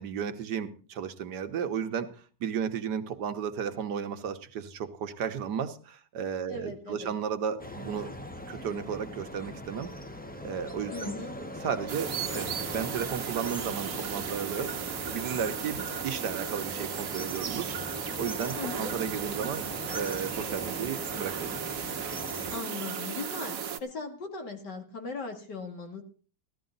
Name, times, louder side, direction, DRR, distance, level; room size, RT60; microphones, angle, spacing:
voice 1, 0.0-8.1 8.5-9.9 10.4-11.1 11.6-14.7 15.1-17.7 18.2-21.6, right 7 dB, 75° right, 9 dB, 1.6 m, -34 dB
voice 2, 6.5-7.1 10.9-11.3 18.5-18.9 22.5-26.0, left 4 dB, 80° left, 5 dB, 2.9 m, -38 dB
sound 1, 7.6-22.6, left 1 dB, 5° left, 0.8 m, -41 dB
sound 2, 11.9-23.8, right 8 dB, 55° right, 1.3 m, -35 dB
15.5 x 13.0 x 4.0 m, 0.38 s
omnidirectional pair, 1.8 m